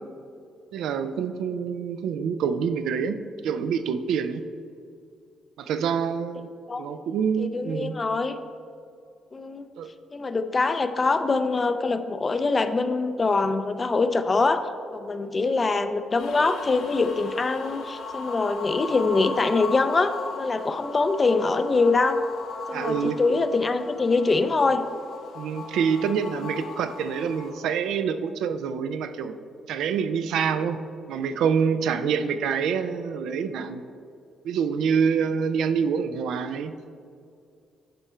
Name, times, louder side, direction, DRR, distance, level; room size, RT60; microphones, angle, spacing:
voice 1, 0.7-3.2 3.4-4.4 5.6-6.5 6.8-8.0 9.8-9.9 22.7-23.2 25.4-29.4 29.7-30.8 31.1-33.8 34.4-36.7, right 6 dB, 80° right, 10 dB, 0.4 m, -26 dB
voice 2, 7.4-8.4 9.3-9.6 10.1-14.6 14.9-22.2 22.7-24.8, left 3 dB, 30° left, 10 dB, 0.5 m, -24 dB
sound 1, 16.2-27.5, left 4 dB, 80° left, 1.1 m, -38 dB
10.5 x 4.4 x 4.3 m, 2.3 s
cardioid pair, 90°, 0 cm